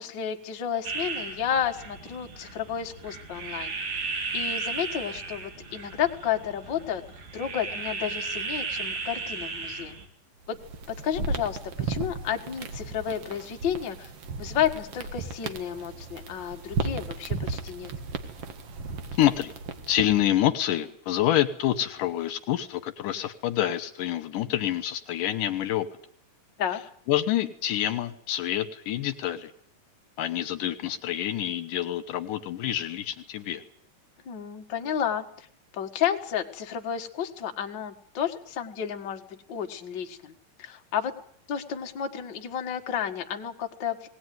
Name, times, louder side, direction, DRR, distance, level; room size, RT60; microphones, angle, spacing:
voice 1, 0.0-3.7 4.3-7.0 7.3-10.0 10.5-10.6 11.0-14.1 14.4-17.9 26.6-26.8 34.3-35.5 35.7-40.3 40.6-41.1 41.5-44.1, left 9 dB, 40° left, 4 dB, 2.0 m, -31 dB
sound 1, 0.8-10.1, right 4 dB, 85° right, 5.1 m, -35 dB
sound 2, 10.4-20.2, right 4 dB, 50° right, 2.3 m, -35 dB
voice 2, 19.2-19.5 19.9-25.9 27.1-29.5 30.2-33.6, left 12 dB, 80° left, 9 dB, 2.7 m, -27 dB
19.5 x 19.0 x 9.4 m, 0.62 s
omnidirectional pair, 3.8 m